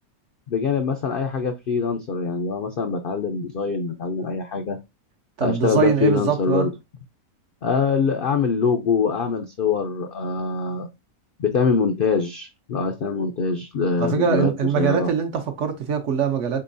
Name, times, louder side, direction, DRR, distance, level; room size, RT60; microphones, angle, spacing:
voice 1, 0.5-4.8 5.4-6.7 7.6-10.9 11.4-15.1, left 5 dB, 70° left, 0.5 m, -23 dB
voice 2, 5.4-6.7 14.0-16.6, right 7 dB, 60° right, 0.9 m, -22 dB
4.3 x 3.8 x 2.5 m
omnidirectional pair, 1.5 m